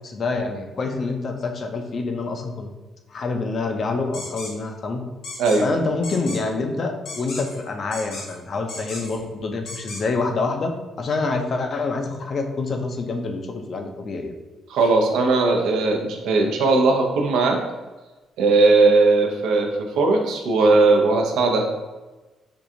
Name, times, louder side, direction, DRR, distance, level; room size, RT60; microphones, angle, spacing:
voice 1, 0.0-2.7 3.1-5.1 5.6-10.7 11.0-14.3, left 3 dB, 50° left, 4 dB, 0.5 m, -26 dB
sound 1, 4.1-4.5 5.2-5.6 6.0-6.4 7.1-7.6 7.9-8.3 8.7-9.2 9.7-10.0, left 3 dB, 80° left, 1.0 m, -35 dB
voice 2, 14.7-17.6 18.4-21.7, right 3 dB, 85° right, 1 dB, 0.6 m, -18 dB
4.5 x 2.4 x 2.7 m, 1.2 s
cardioid pair, 90°, 0 cm